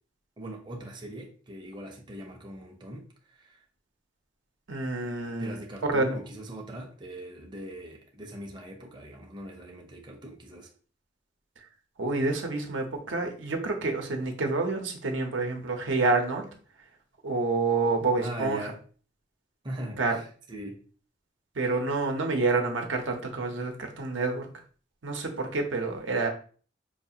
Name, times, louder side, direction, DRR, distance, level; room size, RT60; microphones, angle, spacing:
voice 1, 0.4-3.6 5.4-10.7 18.2-18.8 19.6-20.8, right 1 dB, 25° right, 0.5 m, -40 dB
voice 2, 4.7-5.6 5.8-6.1 12.0-16.5 17.2-18.6 20.0-20.2 21.6-24.5 25.0-26.3, right 3 dB, 85° right, 0.7 m, -28 dB
4.7 x 2.4 x 2.7 m
head